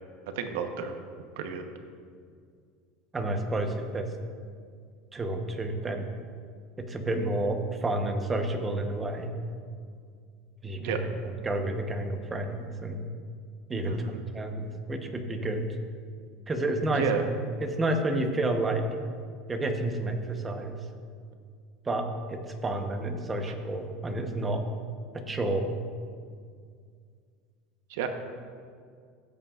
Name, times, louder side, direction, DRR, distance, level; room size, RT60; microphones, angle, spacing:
voice 1, 0.3-0.9 1.4-1.6 10.8-11.0 13.9-14.2 17.0-17.2 27.9-28.1, right 7 dB, 80° right, 6 dB, 1.1 m, -31 dB
voice 2, 3.1-4.1 5.1-6.1 6.8-9.3 10.6-13.1 13.7-14.0 14.3-15.7 16.5-17.1 17.6-18.8 19.5-20.8 21.8-24.6 25.1-25.8, right 2 dB, 20° right, 5 dB, 1.0 m, -30 dB
16.0 x 8.8 x 2.5 m, 2.1 s
supercardioid pair, 125°, 0 cm